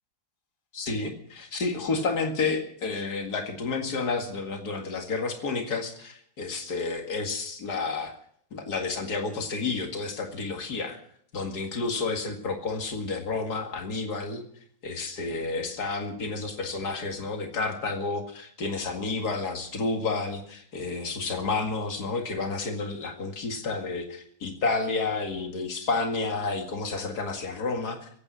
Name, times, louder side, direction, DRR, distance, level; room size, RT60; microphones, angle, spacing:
voice 1, 0.7-8.1 8.5-11.0 11.3-14.4 14.8-28.1, left 3 dB, 70° left, 3 dB, 2.6 m, -30 dB
23.5 x 8.9 x 6.2 m, 0.65 s
omnidirectional pair, 1.8 m